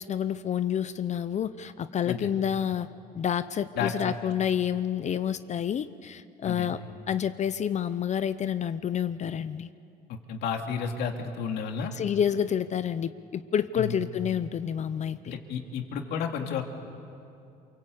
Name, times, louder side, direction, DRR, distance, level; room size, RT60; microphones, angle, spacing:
voice 1, 0.0-2.9 3.1-6.8 7.1-9.7 11.9-15.3, left 9 dB, 45° left, 13 dB, 0.7 m, -29 dB
voice 2, 10.1-11.9 13.8-14.0 15.2-16.6, left 6 dB, 80° left, 3 dB, 2.6 m, -32 dB
28.0 x 23.5 x 8.5 m, 2.6 s
cardioid pair, 110°, 17 cm